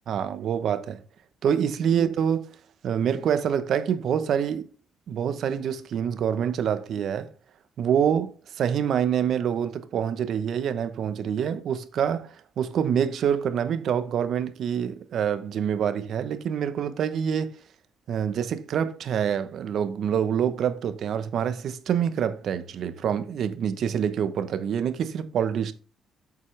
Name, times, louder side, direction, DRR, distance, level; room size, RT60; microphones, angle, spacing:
voice 1, 0.1-1.0 1.4-2.5 2.8-4.7 5.1-7.3 7.8-17.6 18.1-25.7, right 8 dB, 70° right, 0.9 m, -26 dB
8.0 x 7.0 x 3.3 m
cardioid pair, 90°, 0 cm